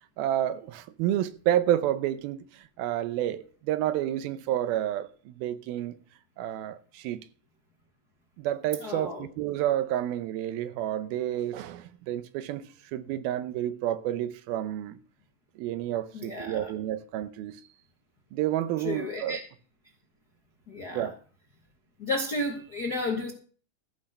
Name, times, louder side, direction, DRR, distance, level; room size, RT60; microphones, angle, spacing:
voice 1, 0.2-2.4 2.8-6.0 6.4-7.2 8.4-15.0 15.6-17.6 18.3-19.4 20.9-21.1, right 12 dB, 90° right, 2.7 m, -30 dB
voice 2, 8.8-9.3 16.1-16.7 18.8-19.4 20.7-21.1 22.0-23.3, left 2 dB, 70° left, 0.9 m, -32 dB
14.0 x 6.4 x 6.6 m
omnidirectional pair, 4.2 m